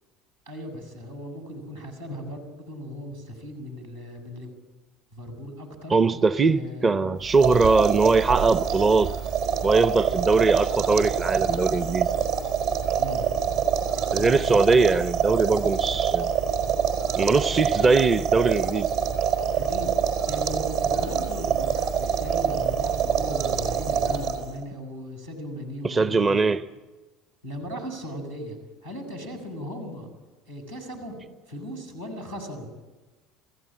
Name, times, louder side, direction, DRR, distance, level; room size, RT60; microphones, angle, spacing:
voice 1, 0.5-4.5 5.1-6.0 6.4-7.1 12.9-13.3 14.2-14.4 19.5-19.9 20.3-26.3 27.4-28.6 28.8-30.1 30.5-31.2 31.5-32.7, equal, 85° right, 6.5 m, -37 dB
voice 2, 5.9-9.1 9.6-12.1 14.1-16.3 17.2-19.0 25.8-26.7, right 4 dB, 25° right, 0.7 m, -21 dB
sound 1, 7.2-24.6, right 7 dB, 65° right, 4.2 m, -25 dB
27.5 x 16.0 x 8.7 m
figure-of-eight pair, 65°, 0 cm